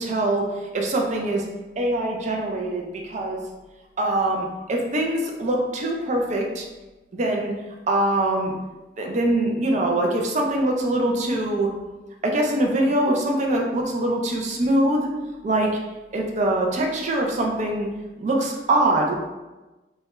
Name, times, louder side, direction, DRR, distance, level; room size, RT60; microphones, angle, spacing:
voice 1, 0.0-1.5 1.8-3.5 4.0-6.6 7.1-7.5 7.9-8.5 9.0-11.7 12.2-15.1 15.4-15.7 16.1-17.9 18.2-19.1, right 1 dB, 40° right, 1 dB, 0.4 m, -23 dB
2.2 x 2.2 x 2.9 m, 1.1 s
head